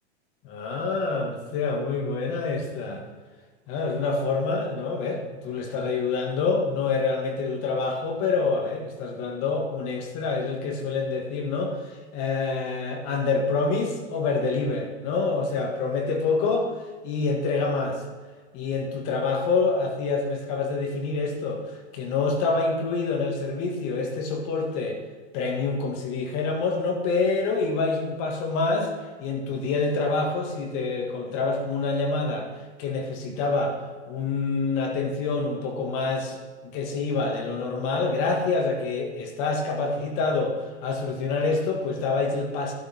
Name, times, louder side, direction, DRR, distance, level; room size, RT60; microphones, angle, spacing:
voice 1, 0.4-3.0 3.7-16.7 17.0-18.0 18.5-25.0 25.3-28.9 29.2-32.5 32.8-33.8 34.1-42.7, left 4 dB, 40° left, 2 dB, 2.0 m, -27 dB
12.5 x 12.0 x 3.7 m, 1.4 s
hypercardioid pair, 140°, 34 cm